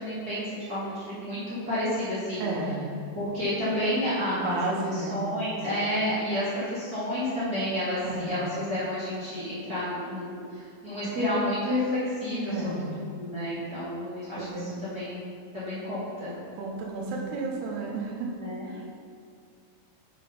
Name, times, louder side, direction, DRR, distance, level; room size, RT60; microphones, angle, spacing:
voice 1, 0.0-2.4 3.1-4.6 4.9-16.3 18.4-18.7, left 1 dB, 60° right, -12 dB, 0.9 m, -30 dB
voice 2, 2.4-2.9 4.3-5.3 8.0-8.4 12.5-13.0 14.4-14.8 16.6-18.3 18.7-19.0, right 3 dB, 90° right, -2 dB, 3.0 m, -32 dB
7.4 x 3.9 x 5.4 m, 2.3 s
omnidirectional pair, 4.6 m